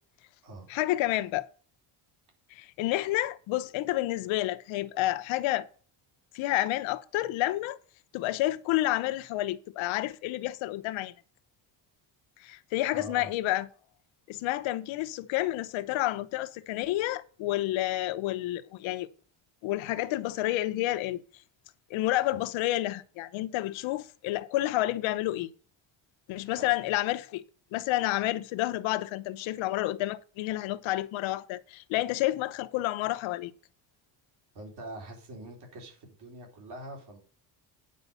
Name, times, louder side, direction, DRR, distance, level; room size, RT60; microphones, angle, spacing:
voice 1, 0.7-1.5 2.5-5.7 6.3-7.8 8.1-11.1 12.4-13.7 14.3-19.1 19.6-21.2 21.9-25.5 26.3-27.4 27.7-33.5, left 16 dB, 85° left, 0.9 m, -30 dB
voice 2, 12.9-13.3 26.6-26.7 34.5-37.2, right 1 dB, 55° right, 4.0 m, -44 dB
9.6 x 5.2 x 6.7 m
cardioid pair, 175°, 46 cm